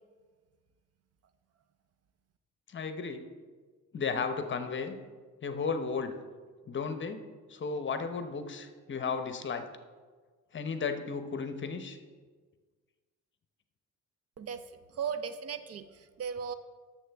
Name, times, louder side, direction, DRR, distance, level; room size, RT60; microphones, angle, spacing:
voice 1, 2.7-3.2 3.9-5.0 5.4-6.1 6.7-7.2 7.5-9.6 10.5-12.0, left 5 dB, 40° left, 9 dB, 0.8 m, -34 dB
voice 2, 14.4-16.5, right 7 dB, 55° right, 11 dB, 0.6 m, -37 dB
11.0 x 7.2 x 3.5 m, 1.5 s
cardioid pair, 90°, 30 cm